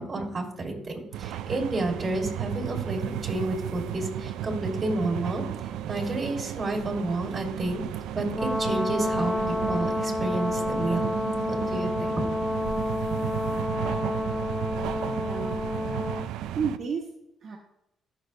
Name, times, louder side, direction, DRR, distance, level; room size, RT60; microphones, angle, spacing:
voice 1, 0.0-5.4 5.9-7.8 8.1-11.1 11.5-12.3, right 2 dB, 35° right, 2 dB, 2.7 m, -30 dB
sound 1, 1.1-16.8, right 11 dB, 90° right, 0.4 m, -34 dB
Brass instrument, 8.3-16.3, left 2 dB, 15° left, 0.4 m, -29 dB
voice 2, 15.1-15.7 16.5-17.6, right 6 dB, 55° right, -2 dB, 1.4 m, -32 dB
15.0 x 6.6 x 2.2 m, 0.82 s
cardioid pair, 90°, 0 cm